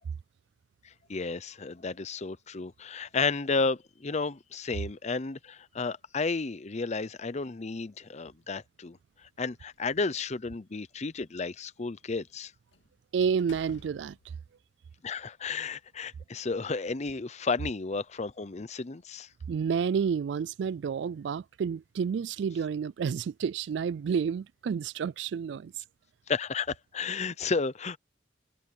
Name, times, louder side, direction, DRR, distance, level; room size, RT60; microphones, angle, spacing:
voice 1, 0.8-9.0 9.4-12.5 15.0-19.3 26.3-28.0, left 4 dB, 40° left, 0.7 m, -32 dB
Slam, 9.5-10.6 12.7-12.9 13.4-14.6, left 2 dB, 90° left, 2.4 m, -55 dB
voice 2, 13.1-14.2 19.5-25.7, right 6 dB, 70° right, 0.3 m, -30 dB
head